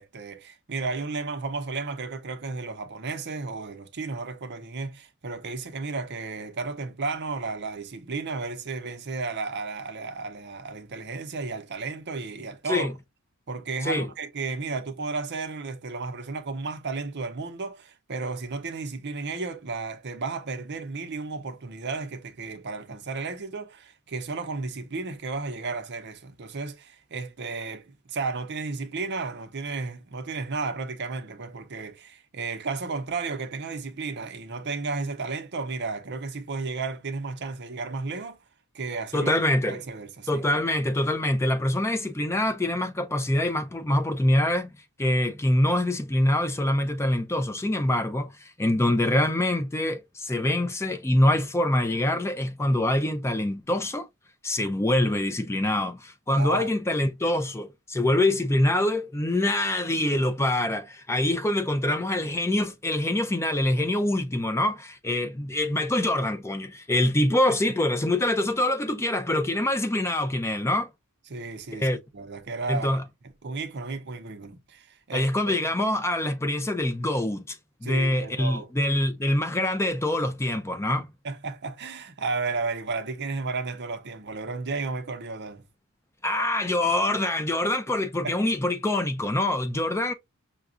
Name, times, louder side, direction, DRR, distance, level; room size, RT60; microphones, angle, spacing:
voice 1, 0.0-12.9 13.5-38.4 38.7-39.3 39.7-40.4 56.3-56.7 67.5-67.6 71.3-73.0 73.4-75.6 77.8-78.7 81.2-85.6 88.2-88.4, right 4 dB, 50° right, 0.7 m, -33 dB
voice 2, 39.1-39.8 40.3-44.7 45.0-54.1 54.4-70.9 71.7-72.0 72.7-73.0 75.1-77.6 77.8-81.1 86.2-90.1, left 1 dB, 10° left, 0.4 m, -25 dB
5.8 x 2.3 x 2.5 m
head